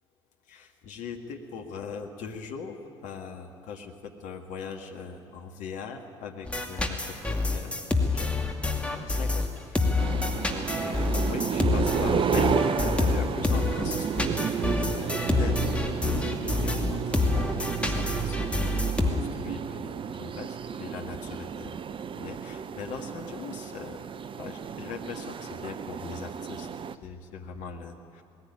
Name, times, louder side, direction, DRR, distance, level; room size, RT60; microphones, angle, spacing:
voice 1, 0.5-2.8 3.0-7.0 7.3-7.9 8.1-8.3 8.8-9.8 10.5-21.7 22.2-24.1 24.4-26.7 27.0-28.2, left 5 dB, 60° left, 3 dB, 1.8 m, -40 dB
sound 1, 6.4-19.1, left 3 dB, 10° left, 2.5 m, -27 dB
sound 2, 10.0-26.9, right 7 dB, 35° right, 0.7 m, -32 dB
20.0 x 15.5 x 9.7 m, 2.4 s
figure-of-eight pair, 50°, 14 cm